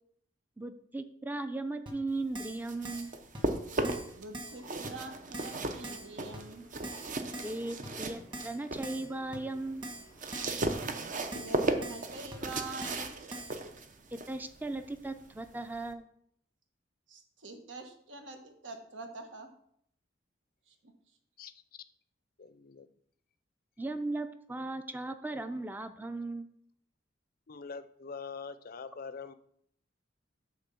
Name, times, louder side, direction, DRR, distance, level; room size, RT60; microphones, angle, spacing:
voice 1, 0.6-3.1 7.4-9.8 14.1-16.1 23.8-26.5, right 2 dB, 10° right, 9 dB, 0.5 m, -37 dB
Keyboard (musical), 1.9-2.0 2.3-2.6 2.8-3.1 3.3-3.4 3.8-4.1 4.3-4.6 4.8-4.9 5.3-5.6 5.8-6.1 6.3-6.4 6.8-7.1 7.3-7.6 7.8-7.9 8.3-8.6 8.8-9.1 9.3-9.4 9.8-10.1 10.3-10.6 10.8-10.9 11.3-11.5 11.8-12.0 12.3-12.4 12.8-13.0 13.3-13.5, right 1 dB, 25° right, 1.4 m, -42 dB
sound 1, 2.4-4.2 4.6-8.9 9.3-15.9, right 2 dB, 45° right, 0.7 m, -36 dB
voice 2, 4.2-6.6 10.9-13.1 17.1-19.5 20.7-20.8, right 3 dB, 85° right, 4 dB, 1.3 m, -45 dB
Guitar, 4.4-11.8, right 1 dB, 65° right, 4.0 m, -60 dB
voice 3, 22.4-22.9 27.5-29.3, left 5 dB, 50° left, 12 dB, 0.5 m, -43 dB
9.6 x 3.6 x 6.9 m, 0.69 s
head